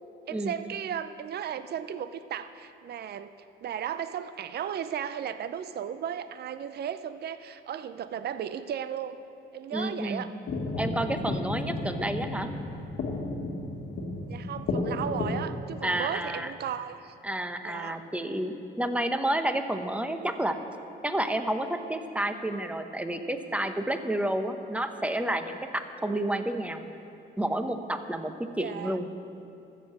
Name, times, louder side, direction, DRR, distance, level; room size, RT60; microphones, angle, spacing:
voice 1, 0.3-3.3 3.6-9.2 9.5-10.3 14.3-17.1 17.6-18.0 28.6-29.0, right 9 dB, 55° right, 12 dB, 0.6 m, -35 dB
voice 2, 9.7-10.3 10.8-12.5 15.8-16.5 17.2-20.6 21.0-26.9 27.4-29.1, right 1 dB, 5° right, 8 dB, 0.9 m, -30 dB
sound 1, 10.5-15.5, left 2 dB, 60° left, 1.5 m, -32 dB
13.5 x 7.4 x 7.8 m, 2.7 s
cardioid pair, 90°, 20 cm